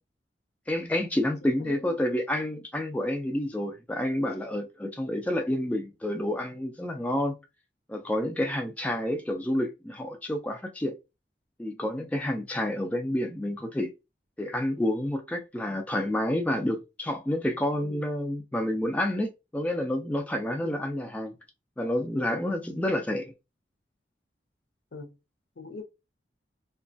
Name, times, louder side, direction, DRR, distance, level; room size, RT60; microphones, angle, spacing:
voice 1, 0.7-7.4 7.9-10.9 11.6-13.9 14.4-21.3 21.8-23.3, left 1 dB, 10° left, 0.3 m, -29 dB
voice 2, 1.6-1.9 17.8-18.0 20.6-20.8 24.9-25.1 25.6-25.8, left 2 dB, 65° left, 0.6 m, -41 dB
3.0 x 2.2 x 2.6 m
head